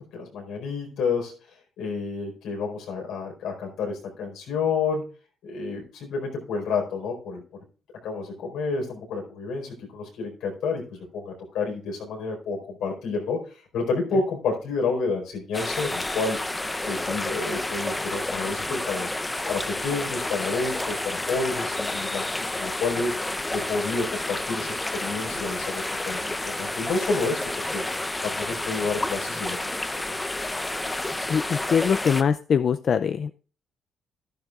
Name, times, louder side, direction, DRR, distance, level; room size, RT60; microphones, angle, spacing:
voice 1, 0.1-1.3 1.8-5.0 5.4-7.4 8.0-16.4 16.8-19.1 19.5-23.2 23.5-27.8 28.2-29.6 29.8-30.2, left 4 dB, 85° left, 1 dB, 4.5 m, -30 dB
sound 1, 15.5-32.2, left 2 dB, 15° left, 0.7 m, -30 dB
voice 2, 31.3-33.3, left 7 dB, 55° left, 11 dB, 0.4 m, -22 dB
12.5 x 11.5 x 2.4 m, 0.37 s
cardioid pair, 90°, 0 cm